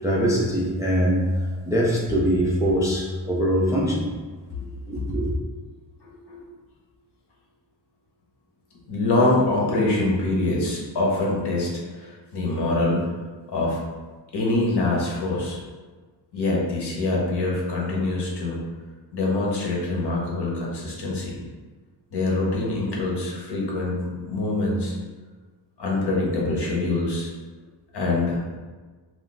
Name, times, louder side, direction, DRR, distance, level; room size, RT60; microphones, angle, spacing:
voice 1, 0.0-4.1 4.9-5.3, equal, 10° right, -4 dB, 0.4 m, -23 dB
voice 2, 6.0-6.5 8.9-13.0 13.5-13.8 14.3-15.6 16.3-18.6 19.1-21.4 22.1-24.9 25.8-27.3 27.9-28.4, left 2 dB, 60° left, -3 dB, 1.0 m, -24 dB
2.3 x 2.1 x 3.9 m, 1.4 s
cardioid pair, 75°, 46 cm